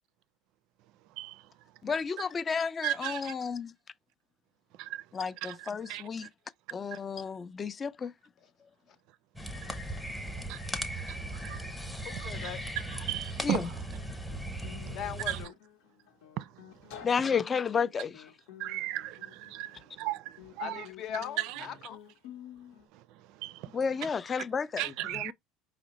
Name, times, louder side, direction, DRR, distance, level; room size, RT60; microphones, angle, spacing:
voice 1, 1.8-3.7 5.1-6.3 6.7-8.1 13.4-13.7 17.0-18.3 23.7-25.3, left 6 dB, 30° left, 0.4 m, -32 dB
voice 2, 2.8-3.3 4.8-5.0 5.4-6.0 10.5-10.6 11.1-11.6 12.2-12.3 12.9-13.7 15.3-15.4 16.4-16.5 18.6-20.9 21.4-21.7 23.4-23.8 24.8-25.3, right 15 dB, 65° right, 0.4 m, -36 dB
sound 1, 9.4-15.5, right 1 dB, 5° left, 0.9 m, -38 dB
voice 3, 12.0-12.6 14.9-15.5 20.6-22.0, left 8 dB, 55° left, 0.8 m, -39 dB
Guitar, 13.5-22.9, left 10 dB, 80° left, 0.9 m, -51 dB
4.9 x 2.0 x 4.0 m
supercardioid pair, 105°, 0 cm